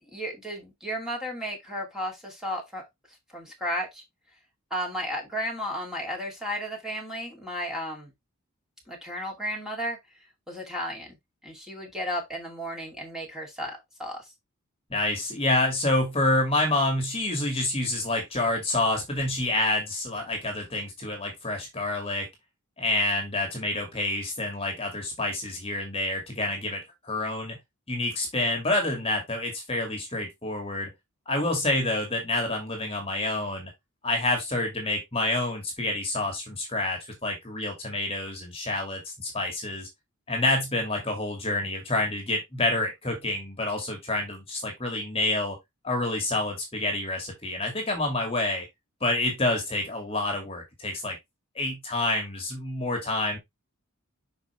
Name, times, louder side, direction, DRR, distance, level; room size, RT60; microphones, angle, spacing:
voice 1, 0.1-2.9 3.3-4.0 4.7-8.1 8.9-10.0 10.5-11.1 11.4-14.3, equal, ahead, 2.5 m, -33 dB
voice 2, 14.9-22.3 22.8-27.6 27.9-30.9 31.3-33.7 34.0-39.9 40.3-45.6 45.8-48.7 49.0-51.2 51.6-53.4, left 2 dB, 25° left, 2.2 m, -28 dB
6.0 x 5.1 x 3.2 m
head